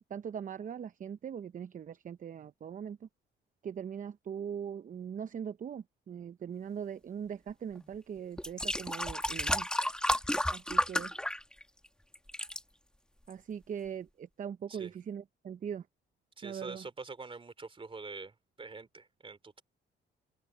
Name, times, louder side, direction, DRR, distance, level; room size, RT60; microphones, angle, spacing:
voice 1, 0.1-3.1 3.6-9.7 10.5-11.1 13.3-15.9 16.4-16.9, right 8 dB, 40° right, 0.6 m, -41 dB
sound 1, 7.8-7.9 8.4-11.9 12.1-12.6 13.3-13.4, left 1 dB, 5° left, 1.6 m, -32 dB
voice 2, 16.4-19.6, right 4 dB, 25° right, 2.8 m, -45 dB
open air
cardioid pair, 90°, 20 cm